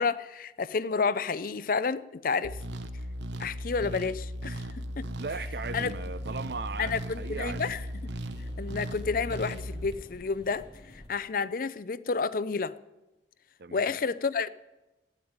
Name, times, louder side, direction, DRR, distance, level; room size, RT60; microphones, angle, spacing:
voice 1, 0.0-2.6 3.4-4.6 5.0-5.1 5.7-5.9 6.8-8.1 8.6-10.7 11.1-12.7 13.7-14.5, left 5 dB, 50° left, 0.5 m, -30 dB
sound 1, 2.4-10.0, equal, 90° right, 0.9 m, -37 dB
voice 2, 5.2-7.6 13.6-14.0, right 4 dB, 60° right, 0.6 m, -38 dB
sound 2, 5.4-11.1, left 1 dB, 25° left, 1.3 m, -52 dB
12.5 x 9.5 x 9.5 m
head